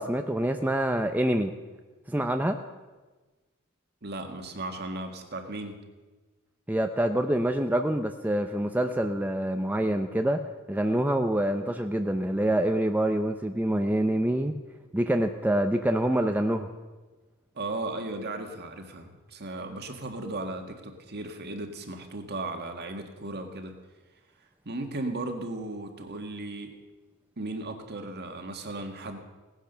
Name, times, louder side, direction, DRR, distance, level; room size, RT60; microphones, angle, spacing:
voice 1, 0.0-1.5 2.1-2.6 6.7-10.4 10.7-14.5 14.9-16.7, right 1 dB, 10° right, 5 dB, 0.6 m, -26 dB
voice 2, 4.0-5.8 17.6-23.7 24.7-26.7 27.4-29.2, right 2 dB, 50° right, 5 dB, 1.8 m, -36 dB
17.5 x 10.0 x 6.8 m, 1.3 s
head